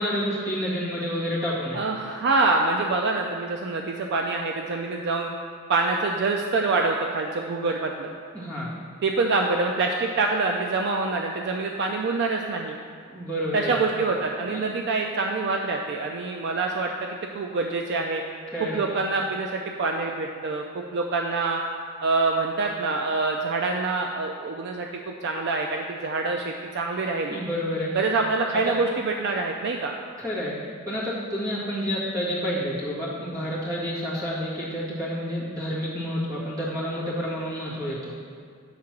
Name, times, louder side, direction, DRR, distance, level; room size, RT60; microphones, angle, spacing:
voice 1, 0.0-1.8 8.3-8.7 13.1-13.7 14.5-14.6 18.5-18.9 27.3-27.9 28.7-28.8 30.2-30.6 30.9-38.2, equal, 15° right, -8 dB, 1.8 m, -29 dB
voice 2, 1.7-5.3 5.7-8.1 9.0-12.8 13.5-18.2 18.6-21.6 22.0-24.9 25.2-27.4 27.9-30.0, right 3 dB, 50° right, 2 dB, 0.4 m, -26 dB
7.4 x 3.8 x 5.9 m, 2.1 s
head